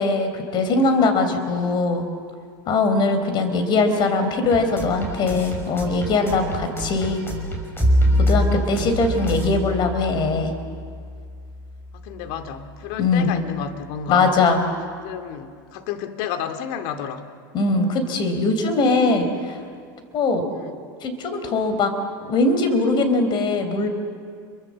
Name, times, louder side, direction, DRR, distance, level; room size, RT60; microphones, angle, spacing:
voice 1, 0.0-2.1 2.7-7.2 8.3-10.5 13.0-13.3 14.1-14.6 17.5-19.6 20.1-20.5 21.0-21.9 22.2-23.9, left 3 dB, 45° left, 8 dB, 4.4 m, -21 dB
sound 1, 4.5-9.5, equal, 20° left, 5.6 m, -32 dB
Bowed string instrument, 7.8-12.4, equal, 10° right, 3.4 m, -24 dB
voice 2, 12.0-14.4 15.0-17.2 20.5-20.8, left 8 dB, 60° left, 7 dB, 2.3 m, -31 dB
28.5 x 23.5 x 7.6 m, 2.2 s
hypercardioid pair, 105°, 11 cm